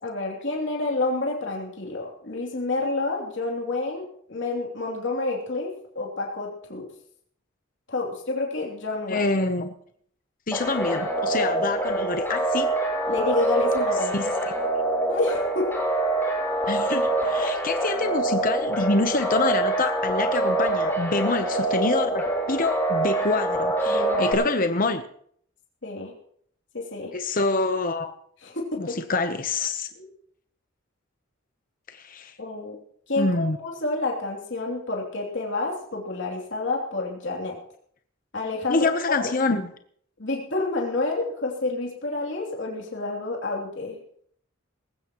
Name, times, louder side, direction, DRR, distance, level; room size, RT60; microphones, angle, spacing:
voice 1, 0.0-6.8 7.9-9.2 13.1-14.3 15.1-15.7 23.9-24.4 25.8-26.1 26.7-27.1 28.4-29.0 32.4-32.8 33.1-37.6 38.3-39.3 40.2-44.0, left 3 dB, 60° left, -1 dB, 3.0 m, -29 dB
voice 2, 9.1-9.7 10.5-12.7 14.1-14.5 16.7-25.0 27.1-28.2 28.8-29.9 31.9-32.4 33.2-33.6 38.7-39.7, left 3 dB, 45° left, 8 dB, 0.9 m, -26 dB
sound 1, 10.5-24.3, right 2 dB, 10° left, 3.7 m, -25 dB
19.5 x 15.5 x 3.0 m, 0.63 s
head